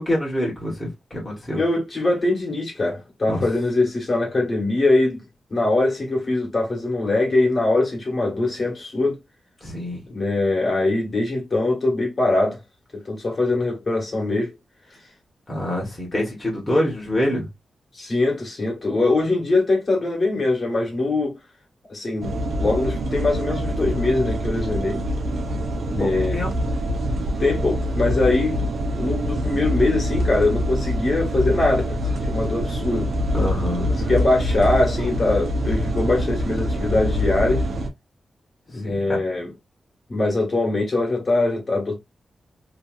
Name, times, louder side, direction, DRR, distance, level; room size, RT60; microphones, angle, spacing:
voice 1, 0.0-1.6 3.3-3.4 9.6-10.0 15.5-17.4 26.0-26.5 33.3-33.9 38.8-39.2, left 1 dB, 20° left, 1.4 m, -25 dB
voice 2, 1.5-5.2 5.5-9.2 10.1-12.6 13.0-14.5 17.9-21.3 21.9-25.0 25.9-26.4 27.4-28.6 29.0-32.0 32.3-33.1 33.7-37.7 38.7-39.5 40.1-42.0, left 2 dB, 40° left, 1.5 m, -22 dB
sound 1, 22.2-37.9, equal, 75° right, 0.8 m, -25 dB
2.9 x 2.8 x 2.5 m
wide cardioid pair, 125°, 0 cm